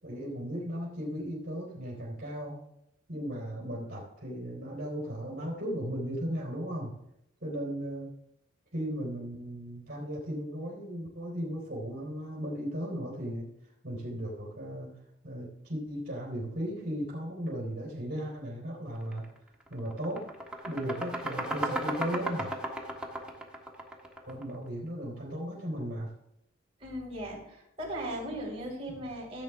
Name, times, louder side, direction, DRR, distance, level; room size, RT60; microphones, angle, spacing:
voice 1, 0.0-2.6 3.1-6.9 7.4-8.1 8.7-13.5 13.8-14.9 15.2-19.2 19.7-20.3 20.6-22.5 24.3-26.1 28.9-29.0, equal, 50° right, -5 dB, 3.4 m, -36 dB
sound 1, 19.0-19.2 19.6-24.5, right 1 dB, 5° right, 1.6 m, -35 dB
voice 2, 26.8-29.4, right 1 dB, 30° right, -4 dB, 5.2 m, -38 dB
15.5 x 8.2 x 3.5 m, 0.78 s
head